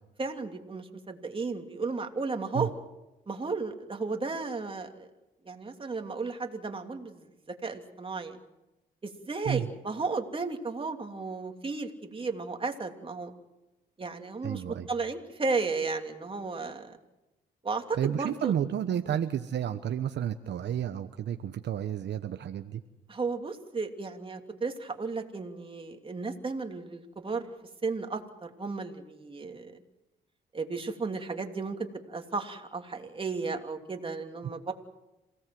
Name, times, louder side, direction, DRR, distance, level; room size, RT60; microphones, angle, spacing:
voice 1, 0.2-2.7 3.3-5.1 5.5-8.4 9.0-13.3 14.0-17.0 17.6-18.5 19.1-19.2 23.1-27.5 27.8-29.8 30.5-31.8 32.1-34.7, right 4 dB, 25° right, 4 dB, 3.0 m, -34 dB
voice 2, 14.4-14.9 18.0-22.8, right 9 dB, 60° right, 8 dB, 1.1 m, -31 dB
27.5 x 18.0 x 7.8 m, 0.97 s
cardioid pair, 90°, 20 cm